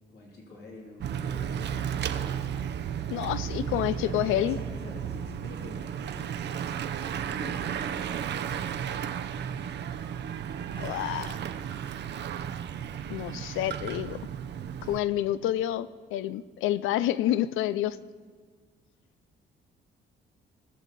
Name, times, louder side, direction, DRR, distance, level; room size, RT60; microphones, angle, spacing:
voice 1, 0.1-3.1 3.4-3.7 4.0-6.6 7.3-8.2, left 1 dB, 55° left, -1 dB, 2.8 m, -46 dB
Bicycle / Mechanisms, 1.0-15.0, right 8 dB, 60° right, 0.6 m, -34 dB
voice 2, 3.1-4.6 10.8-11.4 13.1-14.2 14.8-18.0, left 13 dB, 90° left, 17 dB, 0.4 m, -28 dB
19.0 x 6.6 x 4.1 m, 1.6 s
cardioid pair, 90°, 20 cm